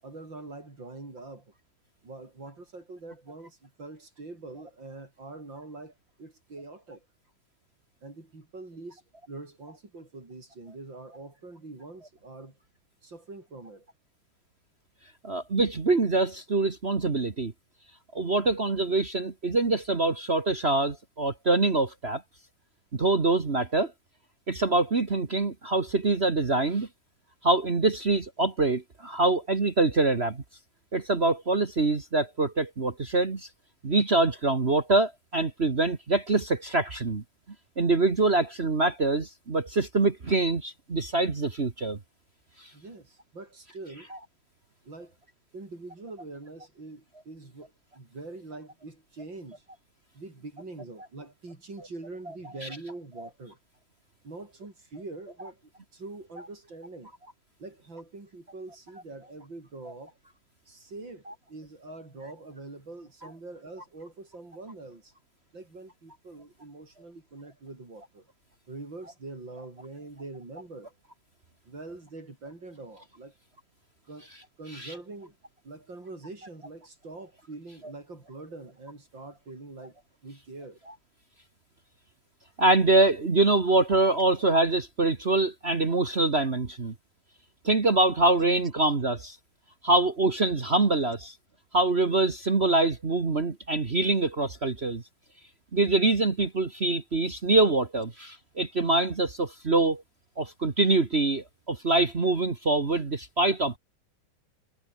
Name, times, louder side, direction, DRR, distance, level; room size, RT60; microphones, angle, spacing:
voice 1, 0.0-1.5 2.0-7.1 8.0-12.6 13.0-13.9 42.7-44.1 44.8-45.2 45.5-49.6 50.1-53.6 54.2-57.1 57.6-60.2 60.7-65.1 65.5-68.3 68.7-70.9 71.7-73.3 74.1-74.3 74.6-75.4 75.6-80.8, right 3 dB, 70° right, 6.3 m, -44 dB
voice 2, 15.2-17.5 18.1-22.2 22.9-23.9 24.5-26.9 27.4-30.4 30.9-33.5 33.8-37.2 37.8-42.0 42.6-42.7 52.6-52.7 74.7-74.9 82.6-86.9 87.6-89.4 89.8-91.3 91.7-95.0 95.7-100.0 100.4-103.8, right 2 dB, 35° right, 1.9 m, -24 dB
omnidirectional pair, 2.1 m